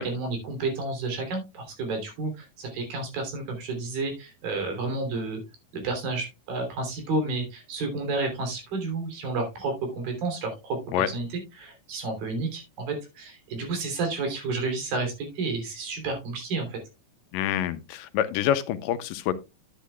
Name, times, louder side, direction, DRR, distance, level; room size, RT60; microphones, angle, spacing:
voice 1, 0.0-5.4 5.7-11.3 11.6-16.8, right 3 dB, 85° right, 5.2 m, -31 dB
voice 2, 17.3-19.3, left 11 dB, 80° left, 2.3 m, -26 dB
10.0 x 10.0 x 2.3 m
omnidirectional pair, 4.0 m